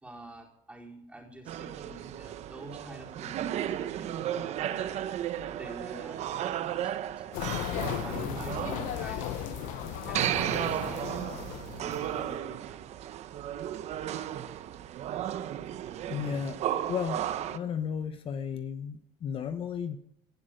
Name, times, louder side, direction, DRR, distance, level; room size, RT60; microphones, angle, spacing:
voice 1, 0.0-5.0 5.6-7.3 7.8-9.4 10.0-12.9, right 1 dB, 10° right, -1 dB, 4.3 m, -47 dB
sound 1, 1.5-17.6, right 11 dB, 55° right, 0.9 m, -34 dB
sound 2, 7.3-12.4, left 15 dB, 75° left, 0.7 m, -36 dB
voice 2, 16.1-16.6 16.9-17.2 17.5-20.0, left 7 dB, 40° left, 8 dB, 1.0 m, -33 dB
18.0 x 11.0 x 5.2 m, 0.75 s
cardioid pair, 120°, 14 cm